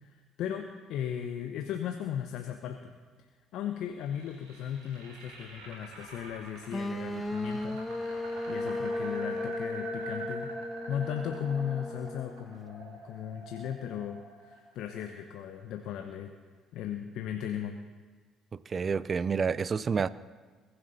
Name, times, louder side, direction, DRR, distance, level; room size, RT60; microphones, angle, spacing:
voice 1, 0.0-3.0 3.5-7.8 8.5-10.5 10.9-16.3 16.7-17.8, left 9 dB, 70° left, 5 dB, 0.9 m, -36 dB
sound 1, 3.8-15.9, right 3 dB, 85° right, 4.0 m, -46 dB
sound 2, 6.7-12.6, left 2 dB, 15° left, 0.6 m, -35 dB
voice 2, 18.5-20.1, right 5 dB, 40° right, 18 dB, 0.5 m, -29 dB
21.5 x 11.5 x 4.2 m, 1.5 s
hypercardioid pair, 55°, 0 cm